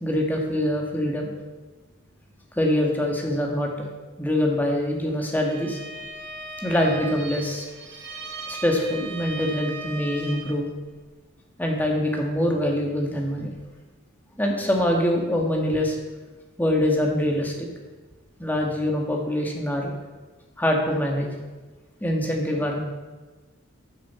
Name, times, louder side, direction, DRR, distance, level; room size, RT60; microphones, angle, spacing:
voice 1, 0.0-1.3 2.6-3.9 4.2-5.8 6.6-7.6 8.5-10.7 11.6-13.5 14.4-16.0 16.6-17.7 18.4-19.9 20.6-21.3 22.0-22.8, left 1 dB, 10° left, 0 dB, 1.5 m, -24 dB
Bowed string instrument, 5.4-10.7, right 2 dB, 55° right, 1.7 m, -37 dB
14.0 x 7.4 x 4.2 m, 1.3 s
head